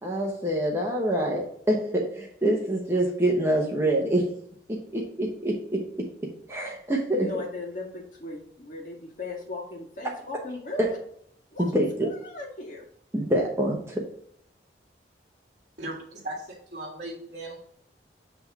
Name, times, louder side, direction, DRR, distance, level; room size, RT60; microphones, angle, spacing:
voice 1, 0.0-4.3 4.7-6.1 6.5-7.3 10.8-10.9 11.6-12.1 13.1-14.0, right 1 dB, 15° right, -2 dB, 1.0 m, -26 dB
voice 2, 7.2-10.8 11.5-11.7 12.0-12.8, left 3 dB, 45° left, -2 dB, 1.8 m, -37 dB
voice 3, 15.8-17.6, right 1 dB, 45° right, -5 dB, 1.6 m, -37 dB
7.8 x 3.5 x 4.7 m, 0.64 s
head